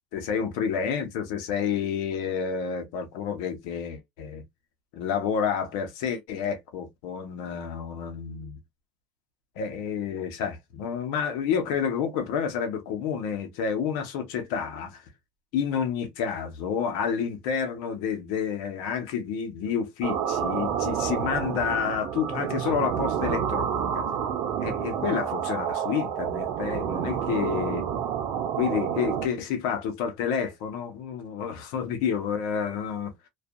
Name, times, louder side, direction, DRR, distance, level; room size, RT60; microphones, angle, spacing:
voice 1, 0.1-4.4 4.9-8.6 9.6-15.0 15.5-24.1 24.6-27.9 28.6-33.1, left 7 dB, 85° left, 0.8 m, -29 dB
sound 1, 20.0-29.3, right 8 dB, 75° right, 0.7 m, -29 dB
2.6 x 2.4 x 2.4 m
supercardioid pair, 105°, 3 cm